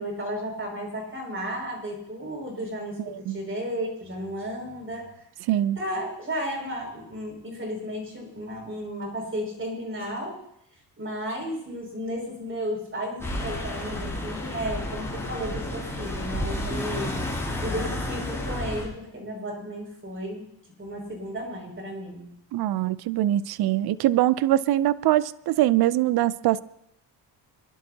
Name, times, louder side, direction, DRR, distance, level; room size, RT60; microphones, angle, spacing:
voice 1, 0.0-5.1 5.8-10.4 11.0-17.2 17.6-20.4 20.8-22.3, equal, 30° right, 5.9 m, -33 dB
voice 2, 3.1-3.4 5.5-5.8 22.5-26.6, right 14 dB, 65° right, 0.5 m, -23 dB
sound 1, 13.2-18.9, left 1 dB, 5° left, 6.8 m, -31 dB
25.5 x 11.5 x 2.8 m
cardioid pair, 90°, 42 cm